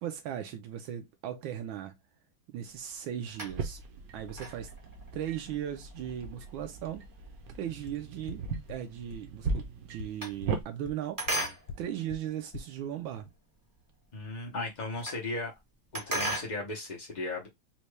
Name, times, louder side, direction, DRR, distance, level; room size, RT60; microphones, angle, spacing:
voice 1, 0.0-2.0 2.5-3.8 4.1-4.7 5.1-7.1 7.5-11.2 11.8-13.3, right 10 dB, 85° right, 1.4 m, -37 dB
sound 1, 2.7-3.9 4.3-8.8 9.1-10.9 11.2-13.2 13.7-13.8 14.0-14.1 14.3-15.3 15.6-16.6, right 1 dB, 20° right, 0.5 m, -38 dB
sound 2, 3.5-10.6, right 4 dB, 65° right, 0.9 m, -38 dB
sound 3, 7.9-8.0 8.3-8.4 8.7-8.8 9.1-9.2 9.5-9.6 10.0-10.1 10.4-10.5 10.9-11.0 11.3-11.4 11.7-11.8 12.1-12.2 12.5-12.6, left 5 dB, 65° left, 1.3 m, -41 dB
voice 2, 14.1-15.6 15.9-17.5, left 2 dB, 85° left, 0.4 m, -36 dB
4.2 x 2.2 x 3.1 m
omnidirectional pair, 2.2 m